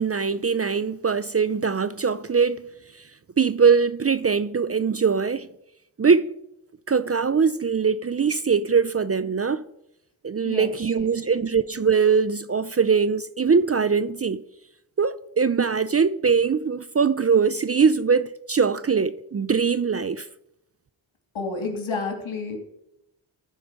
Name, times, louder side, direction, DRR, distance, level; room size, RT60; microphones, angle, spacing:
voice 1, 0.0-2.6 3.4-5.5 6.0-6.3 6.9-9.6 10.2-14.4 15.0-20.3, right 5 dB, 30° right, 0.5 m, -22 dB
voice 2, 21.3-22.6, left 4 dB, 70° left, 2.9 m, -30 dB
14.5 x 5.0 x 6.1 m
cardioid pair, 50°, 49 cm